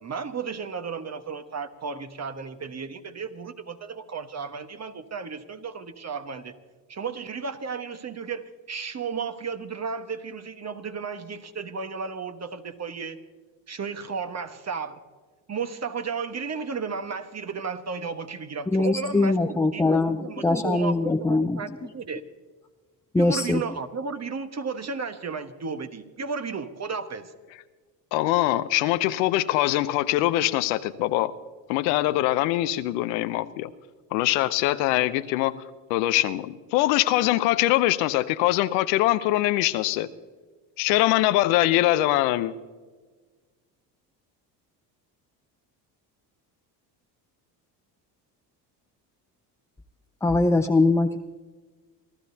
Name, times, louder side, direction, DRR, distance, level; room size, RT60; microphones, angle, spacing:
voice 1, 0.0-6.5 6.9-13.2 13.7-15.0 15.5-22.2 23.1-27.3, right 5 dB, 30° right, 8 dB, 1.4 m, -34 dB
voice 2, 18.7-21.6 23.1-23.6 50.2-51.2, left 2 dB, 5° left, 6 dB, 0.5 m, -22 dB
voice 3, 28.1-31.3 31.7-33.7 34.1-35.5 35.9-40.1 40.8-42.5, left 15 dB, 80° left, 12 dB, 0.8 m, -23 dB
27.5 x 13.0 x 2.8 m, 1.4 s
hypercardioid pair, 65°, 50 cm